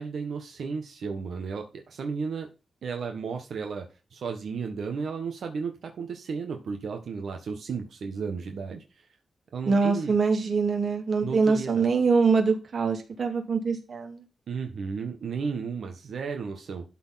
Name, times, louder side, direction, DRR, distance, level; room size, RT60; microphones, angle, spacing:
voice 1, 0.0-2.5 2.8-9.1 9.5-10.1 11.2-11.9 14.5-16.8, right 5 dB, 75° right, 4 dB, 1.5 m, -34 dB
voice 2, 9.7-14.2, right 4 dB, 50° right, 4 dB, 2.6 m, -24 dB
12.5 x 4.4 x 5.8 m, 0.31 s
wide cardioid pair, 135°, 0 cm